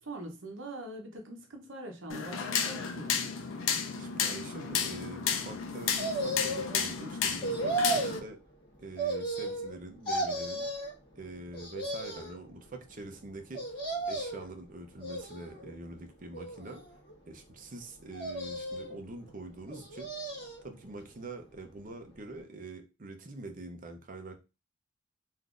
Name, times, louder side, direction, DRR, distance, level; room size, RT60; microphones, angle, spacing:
voice 1, 0.0-3.2, right 1 dB, 75° right, 0.9 m, -43 dB
sound 1, 2.1-8.2, left 7 dB, 90° left, 0.5 m, -32 dB
voice 2, 4.0-8.4 8.8-10.7 11.2-16.8 17.3-20.1 20.6-24.4, right 2 dB, 45° right, 0.6 m, -45 dB
sound 2, 6.0-6.8 7.4-8.2 9.0-9.8 10.1-10.9 11.5-12.4 13.5-14.5 15.0-15.7 16.3-17.1 18.1-19.0 19.7-20.6 21.0-21.1, right 2 dB, 25° left, 1.6 m, -34 dB
3.7 x 2.6 x 2.4 m
head